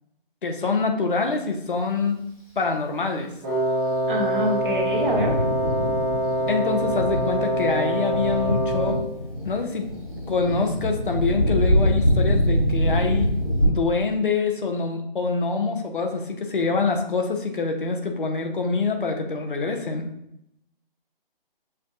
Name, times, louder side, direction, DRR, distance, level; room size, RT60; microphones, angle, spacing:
voice 1, 0.4-2.2 2.6-3.3 6.5-9.0 9.4-9.9 10.3-13.3 13.7-20.1, left 4 dB, 60° left, 3 dB, 0.8 m, -25 dB
Wind instrument woodwind instrument, 3.4-9.1, right 1 dB, 20° right, 0.8 m, -25 dB
Thunder, 3.9-13.7, equal, 35° left, 1.1 m, -25 dB
voice 2, 4.1-5.3, equal, 60° right, 0 dB, 1.1 m, -25 dB
6.9 x 2.4 x 2.5 m, 0.77 s
figure-of-eight pair, 150°, 29 cm